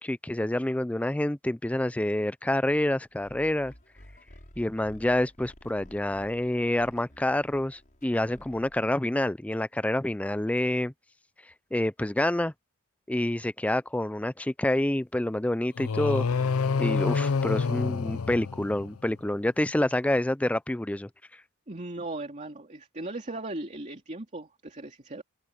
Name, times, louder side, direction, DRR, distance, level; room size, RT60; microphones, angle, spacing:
voice 1, 0.0-3.7 4.6-10.9 11.7-12.5 13.1-16.3 16.8-21.1, left 1 dB, 5° left, 0.4 m, -27 dB
sound 1, 3.2-8.9, equal, 40° left, 6.1 m, -52 dB
sound 2, 15.8-19.1, left 5 dB, 90° left, 0.6 m, -27 dB
voice 2, 21.7-25.2, right 2 dB, 35° right, 2.8 m, -37 dB
open air
head